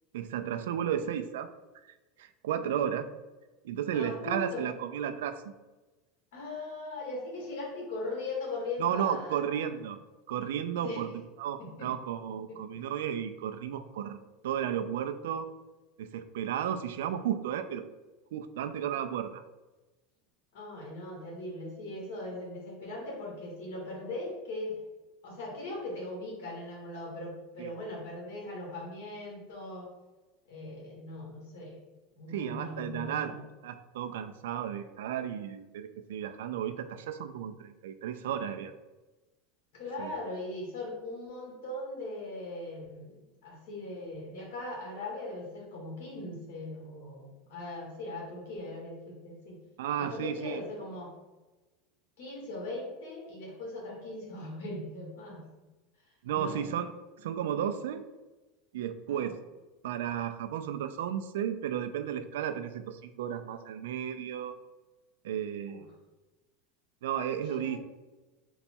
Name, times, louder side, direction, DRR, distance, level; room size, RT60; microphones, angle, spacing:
voice 1, 0.1-1.5 2.2-3.0 3.6-5.5 8.8-10.0 10.3-11.1 11.4-15.5 16.0-17.8 18.3-19.4 27.6-27.7 32.3-33.3 33.6-38.7 40.0-40.1 49.8-50.6 56.2-56.9 57.2-58.0 58.7-59.4 59.8-64.6 65.2-65.9 67.0-67.8, right 9 dB, 90° right, 9 dB, 0.3 m, -33 dB
voice 2, 2.5-2.8 3.9-4.7 6.3-9.7 10.8-11.1 11.6-11.9 12.5-12.6 20.5-24.8 25.2-29.9 30.5-31.8 32.2-33.4 39.7-49.6 50.0-51.1 52.2-55.5 56.3-56.7 59.1-59.3 65.7-65.8 67.5-67.8, left 2 dB, 75° left, -2 dB, 1.4 m, -39 dB
4.0 x 2.2 x 4.3 m, 1.1 s
supercardioid pair, 145°, 0 cm